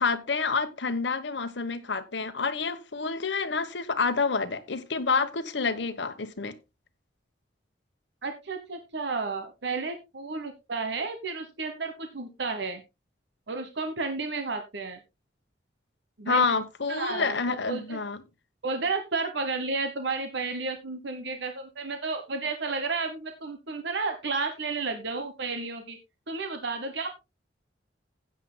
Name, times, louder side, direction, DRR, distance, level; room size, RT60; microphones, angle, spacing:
voice 1, 0.0-6.6 16.3-18.2, left 4 dB, 75° left, 1.1 m, -28 dB
voice 2, 8.2-12.8 13.5-15.0 16.2-16.4 16.9-18.0 18.6-26.0 26.3-27.1, right 4 dB, 70° right, 1.1 m, -32 dB
15.5 x 9.3 x 2.2 m
head